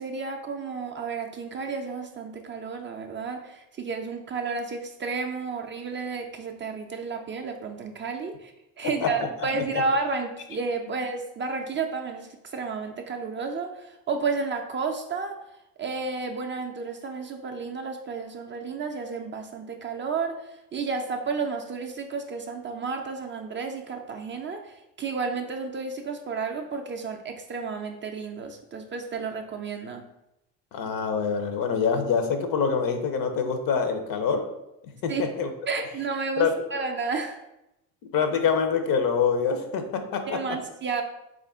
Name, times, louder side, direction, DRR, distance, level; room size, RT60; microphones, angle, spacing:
voice 1, 0.0-8.5 8.8-15.4 15.8-30.1 35.1-35.3 35.7-37.4 40.3-41.0, right 4 dB, 30° right, 3 dB, 0.4 m, -32 dB
voice 2, 30.7-34.4 35.0-35.1 35.4-35.5 36.4-36.5 38.1-40.4, left 6 dB, 55° left, 7 dB, 0.6 m, -25 dB
3.5 x 2.5 x 3.4 m, 0.89 s
supercardioid pair, 70°, 41 cm